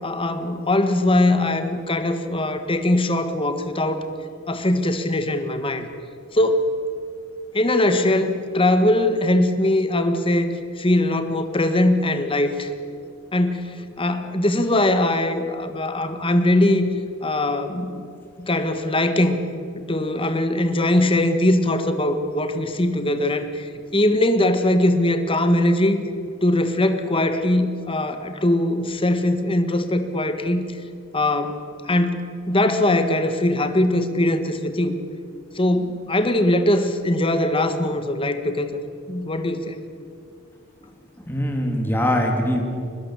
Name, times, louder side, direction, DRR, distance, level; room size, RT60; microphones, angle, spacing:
voice 1, 0.0-4.1 4.5-5.9 6.3-6.7 7.5-12.7 13.3-16.9 17.2-18.0 18.4-19.4 19.7-26.0 26.4-30.6 31.1-31.6 31.9-35.0 35.5-38.7 39.1-39.7, left 1 dB, 25° left, 8 dB, 1.6 m, -21 dB
voice 2, 41.2-42.6, equal, 10° left, 2 dB, 3.0 m, -22 dB
23.0 x 20.5 x 8.3 m, 2.3 s
head